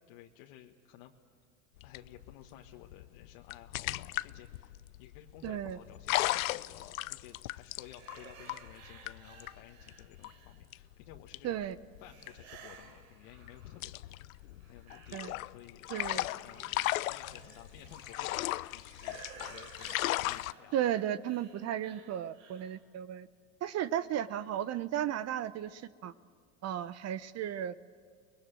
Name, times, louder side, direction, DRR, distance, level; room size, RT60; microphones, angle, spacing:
voice 1, 0.1-1.1 1.8-11.7 12.0-14.2 14.7-15.9 16.4-20.8, left 12 dB, 65° left, 1 dB, 1.6 m, -54 dB
sound 1, 1.8-13.0 13.3-20.5, left 17 dB, 85° left, 0.7 m, -37 dB
voice 2, 5.4-5.8 11.4-11.8 15.1-15.3 15.9-16.3 20.7-23.3 23.6-26.1 26.6-27.7, right 11 dB, 40° right, 16 dB, 0.7 m, -34 dB
sound 2, 7.7-10.9 12.0-14.0 14.4-22.8, right 6 dB, 75° right, 3.8 m, -55 dB
29.0 x 21.5 x 9.0 m, 2.1 s
hypercardioid pair, 100°, 40 cm